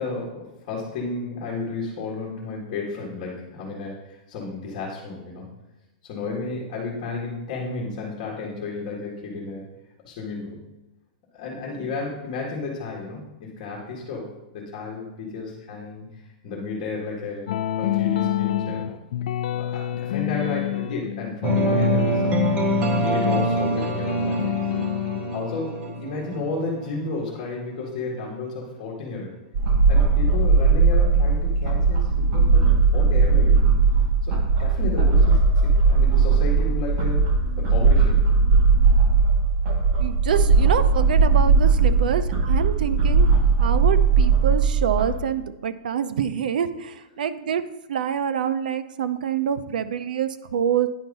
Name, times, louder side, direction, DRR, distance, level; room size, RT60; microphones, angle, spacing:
voice 1, 0.0-5.5 6.0-9.6 10.0-10.6 11.3-17.5 17.8-18.9 19.5-24.5 25.3-29.3 29.9-32.7 32.9-33.7 34.2-37.2 37.6-38.2 41.8-42.1, left 3 dB, 35° left, -4 dB, 1.8 m, -32 dB
sound 1, 17.5-25.4, left 13 dB, 60° left, 0.5 m, -27 dB
sound 2, 21.4-27.3, right 2 dB, 20° right, 0.6 m, -25 dB
sound 3, 29.5-45.1, right 4 dB, 35° right, 1.2 m, -18 dB
voice 2, 40.0-43.3 43.6-47.6 47.9-50.9, right 8 dB, 80° right, 11 dB, 0.6 m, -26 dB
9.7 x 4.5 x 5.4 m, 0.98 s
supercardioid pair, 170°, 5 cm